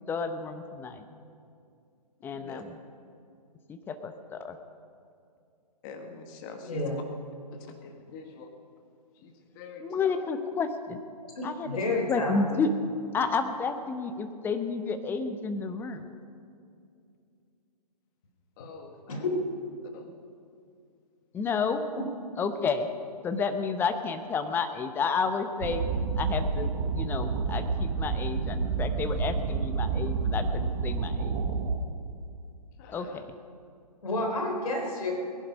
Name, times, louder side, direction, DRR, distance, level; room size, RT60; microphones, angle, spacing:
voice 1, 0.1-1.0 2.2-2.7 3.9-4.6 9.8-11.0 11.4-11.8 12.1-12.7 13.1-16.0 21.3-21.8 22.4-22.9 23.2-25.8 26.2-31.3 32.9-33.3, left 5 dB, 10° left, 9 dB, 0.7 m, -31 dB
voice 2, 2.3-2.6 5.8-7.0 7.5-8.5 9.1-10.2 18.6-19.3 19.9-20.1 32.8-33.2, left 5 dB, 30° left, 5 dB, 1.6 m, -46 dB
voice 3, 6.6-7.0 11.3-12.6 19.1-19.4 34.0-35.2, left 2 dB, 65° left, 2 dB, 3.9 m, -30 dB
sound 1, 25.6-31.8, right 4 dB, 40° right, 1.3 m, -29 dB
20.5 x 11.0 x 5.3 m, 2.4 s
figure-of-eight pair, 135°, 21 cm